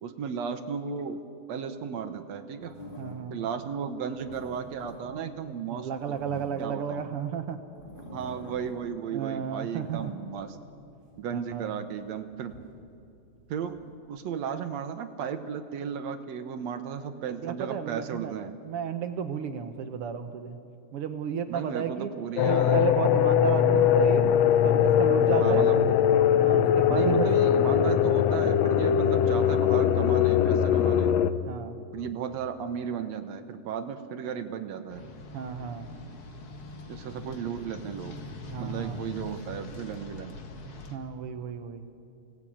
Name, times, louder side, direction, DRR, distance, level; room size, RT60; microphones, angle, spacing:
voice 1, 0.0-1.2 1.5-2.8 3.3-6.2 6.6-7.1 8.1-10.6 11.2-12.6 13.5-13.8 14.1-18.6 21.5-22.9 25.4-25.8 26.9-31.2 31.9-35.0 36.9-38.2 38.6-40.4, right 7 dB, 70° right, 8 dB, 1.8 m, -34 dB
sound 1, 2.6-3.5 4.0-7.2 7.7-9.0 9.3-11.2 11.8-13.9, left 1 dB, 20° left, 1.8 m, -47 dB
voice 2, 3.0-3.4 5.7-7.6 9.1-10.1 11.3-11.8 17.4-18.3 18.6-20.6 20.9-22.1 22.4-24.3 24.6-25.7 26.4-27.3 31.5-31.8 35.3-35.9 38.5-39.0 40.9-41.8, right 8 dB, 85° right, 7 dB, 1.2 m, -33 dB
sound 2, 22.4-31.3, left 9 dB, 85° left, 1.5 m, -21 dB
sound 3, 34.9-41.0, left 2 dB, 45° left, 2.2 m, -42 dB
29.0 x 18.5 x 8.7 m, 2.5 s
omnidirectional pair, 4.0 m